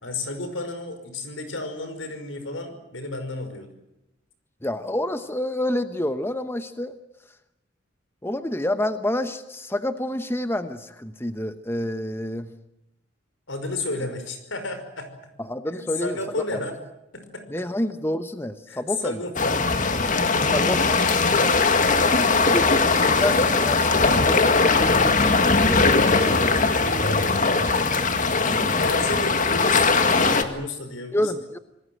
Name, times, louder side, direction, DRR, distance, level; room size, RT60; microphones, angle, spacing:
voice 1, 0.0-3.7 13.5-15.1 15.7-16.8 17.1-17.6 18.7-19.7 26.2-27.9 28.4-31.3, left 2 dB, 80° left, 9 dB, 5.5 m, -33 dB
voice 2, 4.6-7.0 8.2-12.5 15.4-16.6 17.5-19.2 20.4-21.0 22.5-26.7 27.4-27.5 28.5-28.9 29.2-29.3 31.1-31.6, left 1 dB, 10° left, 10 dB, 1.0 m, -29 dB
sound 1, 19.4-30.4, left 4 dB, 40° left, 2.0 m, -20 dB
27.5 x 20.0 x 7.9 m, 0.89 s
head